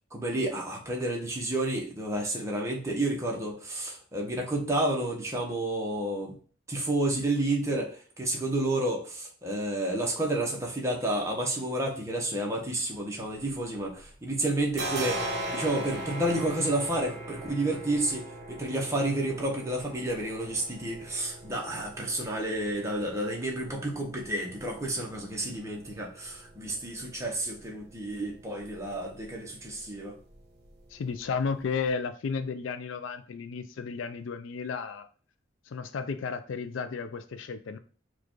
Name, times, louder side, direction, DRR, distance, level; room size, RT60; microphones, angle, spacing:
voice 1, 0.1-6.4 6.7-15.2 15.5-30.1, right 1 dB, 15° right, 1.0 m, -30 dB
sound 1, 13.2-14.1 14.4-31.9, right 1 dB, 50° right, 1.0 m, -41 dB
voice 2, 30.9-35.1 35.7-37.8, left 5 dB, 70° left, 0.4 m, -33 dB
4.8 x 2.4 x 4.5 m
head